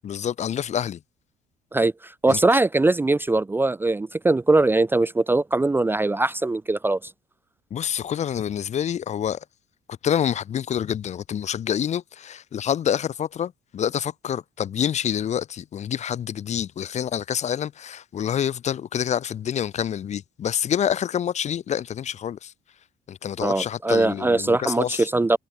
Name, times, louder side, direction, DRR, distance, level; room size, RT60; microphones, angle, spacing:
voice 1, 0.0-1.0 2.3-2.4 7.7-9.4 10.0-22.5 23.1-25.1, left 9 dB, 45° left, 0.7 m, -27 dB
voice 2, 1.7-7.0 23.4-25.4, right 2 dB, 10° right, 0.5 m, -21 dB
cardioid pair, 110°, 17 cm